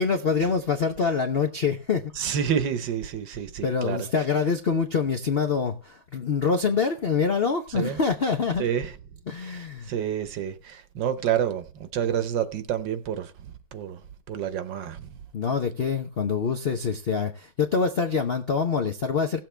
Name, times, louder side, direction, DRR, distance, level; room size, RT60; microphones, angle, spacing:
voice 1, 0.0-2.1 3.6-8.6 9.3-9.9 15.3-19.4, left 5 dB, 55° left, 0.6 m, -25 dB
voice 2, 2.2-4.1 7.7-8.0 8.6-8.9 9.4-14.0 14.3-15.1, right 9 dB, 65° right, 1.5 m, -29 dB
17.0 x 7.6 x 3.3 m
omnidirectional pair, 2.3 m